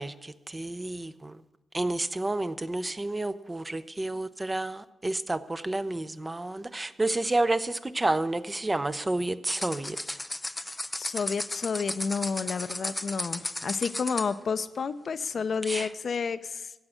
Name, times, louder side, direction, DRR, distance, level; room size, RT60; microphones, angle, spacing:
voice 1, 0.0-1.3 1.7-10.2 15.7-15.9, right 2 dB, 25° right, 12 dB, 0.6 m, -30 dB
sound 1, 9.5-14.4, left 1 dB, 15° left, 0.3 m, -35 dB
voice 2, 11.0-16.7, left 5 dB, 60° left, 11 dB, 0.6 m, -30 dB
13.5 x 8.6 x 6.6 m, 1.0 s
cardioid pair, 60°, 0 cm